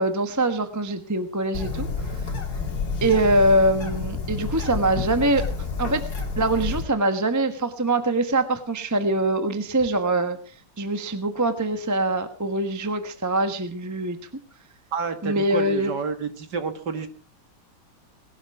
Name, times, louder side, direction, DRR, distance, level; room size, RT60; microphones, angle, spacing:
voice 1, 0.0-1.9 3.0-5.4 5.8-6.0 6.4-10.4 10.8-14.2 15.2-15.9, right 1 dB, 10° right, 9 dB, 1.0 m, -23 dB
Bird, 1.5-6.8, left 4 dB, 50° left, 3.1 m, -29 dB
voice 2, 14.9-17.1, right 5 dB, 55° right, 8 dB, 2.4 m, -29 dB
19.5 x 12.5 x 4.8 m, 0.39 s
omnidirectional pair, 2.2 m